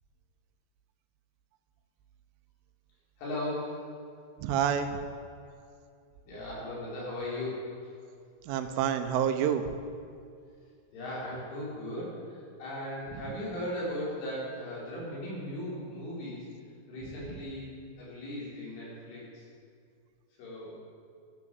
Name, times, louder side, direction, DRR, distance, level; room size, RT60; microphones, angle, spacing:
voice 1, 3.2-3.8 6.3-7.7 10.9-16.5 16.9-17.7 18.0-19.5 20.4-20.8, left 1 dB, 70° left, -6 dB, 7.4 m, -37 dB
voice 2, 4.4-5.0 8.4-9.8 17.3-17.4, right 8 dB, 80° right, 8 dB, 3.3 m, -28 dB
14.5 x 11.5 x 7.8 m, 2.3 s
omnidirectional pair, 5.8 m